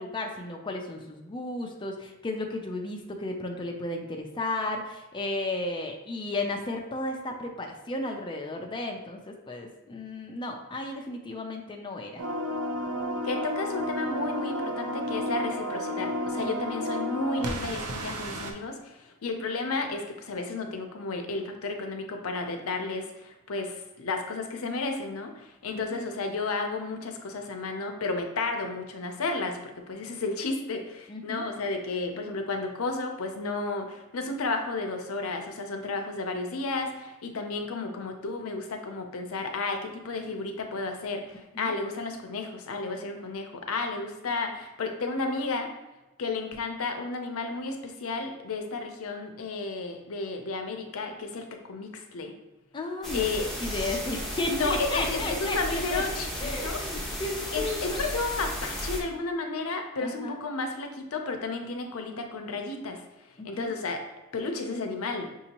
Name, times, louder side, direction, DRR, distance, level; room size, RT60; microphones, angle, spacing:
voice 1, 0.0-12.2 16.4-16.7 25.7-26.0 31.1-31.5 41.6-41.7 52.7-53.3 53.6-56.0 56.4-58.0 60.0-60.4 63.6-63.7, left 2 dB, 20° left, 1 dB, 0.4 m, -34 dB
sound 1, 12.2-18.5, equal, 90° right, 0.6 m, -32 dB
voice 2, 13.2-45.7 46.2-52.3 53.1-53.5 54.5-56.8 57.5-63.0 63.4-64.0 64.3-65.3, left 3 dB, 70° left, 4 dB, 0.6 m, -32 dB
sound 2, 53.0-59.0, equal, ahead, 1.0 m, -34 dB
6.0 x 2.7 x 2.9 m, 1.0 s
head